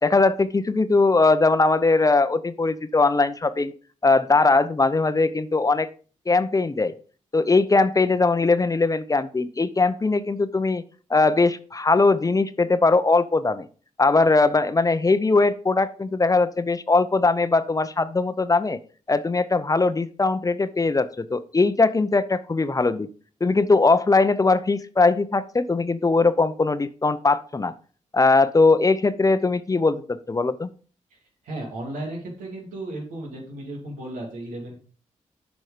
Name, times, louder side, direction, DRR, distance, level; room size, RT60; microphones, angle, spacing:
voice 1, 0.0-3.7 4.0-5.9 6.3-6.9 7.3-10.8 11.1-13.7 14.0-18.8 19.1-23.1 23.4-27.7 28.1-30.7, left 3 dB, 25° left, 13 dB, 0.7 m, -20 dB
voice 2, 31.4-34.7, right 1 dB, 90° right, 1 dB, 2.6 m, -34 dB
7.7 x 5.3 x 5.0 m, 0.40 s
cardioid pair, 65°, 13 cm